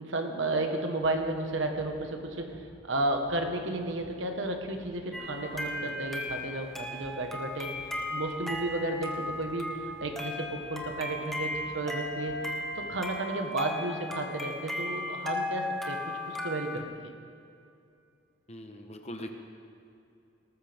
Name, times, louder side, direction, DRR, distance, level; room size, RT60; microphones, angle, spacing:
voice 1, 0.0-2.6 2.9-7.7 8.1-9.7 10.0-12.4 12.7-17.1, right 2 dB, 80° right, 4 dB, 1.4 m, -33 dB
sound 1, 1.0-13.0, equal, 90° left, 2.6 m, -55 dB
sound 2, 5.1-16.8, left 1 dB, ahead, 1.1 m, -36 dB
voice 2, 18.5-19.3, equal, 35° left, 5 dB, 1.0 m, -41 dB
19.0 x 13.5 x 3.6 m, 2.6 s
head